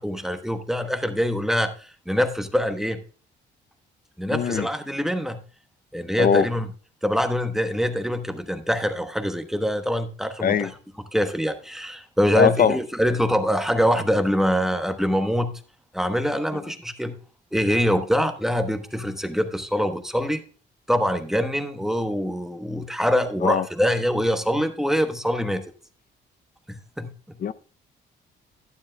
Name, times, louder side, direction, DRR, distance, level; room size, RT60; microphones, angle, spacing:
voice 1, 0.0-3.0 4.2-5.4 5.9-6.7 7.0-10.7 11.1-15.5 15.9-17.2 17.5-20.4 20.9-25.6 26.7-27.4, equal, ahead, 1.0 m, -24 dB
voice 2, 4.3-4.7 6.2-6.5 10.4-10.7 12.3-12.8 16.5-16.6 23.4-23.7 27.4-27.5, left 7 dB, 45° left, 0.6 m, -21 dB
11.5 x 10.0 x 2.2 m
cardioid pair, 90°, 20 cm